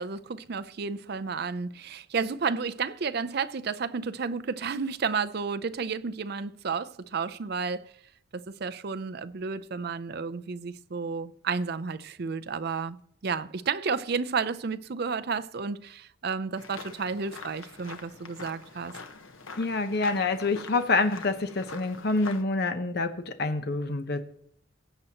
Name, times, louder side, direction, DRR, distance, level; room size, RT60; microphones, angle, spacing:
voice 1, 0.0-7.9 8.3-13.0 13.2-18.9, right 5 dB, 55° right, 0.5 m, -32 dB
sound 1, 16.6-22.4, left 4 dB, 85° left, 1.1 m, -45 dB
voice 2, 19.6-24.3, left 3 dB, 55° left, 0.8 m, -27 dB
18.0 x 7.7 x 2.9 m
head